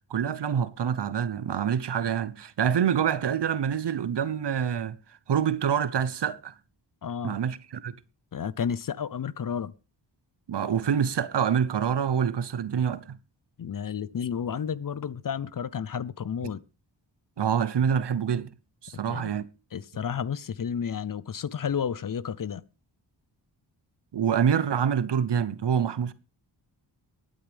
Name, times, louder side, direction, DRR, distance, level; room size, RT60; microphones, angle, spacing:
voice 1, 0.1-5.0 5.3-6.5 7.2-7.9 10.5-13.2 17.4-18.5 18.8-19.5 24.1-26.1, right 8 dB, 60° right, 0.9 m, -26 dB
voice 2, 7.0-7.4 8.3-9.7 13.6-16.6 19.1-19.3 19.7-22.6, left 7 dB, 45° left, 0.6 m, -31 dB
22.5 x 9.1 x 3.5 m
cardioid pair, 60°, 46 cm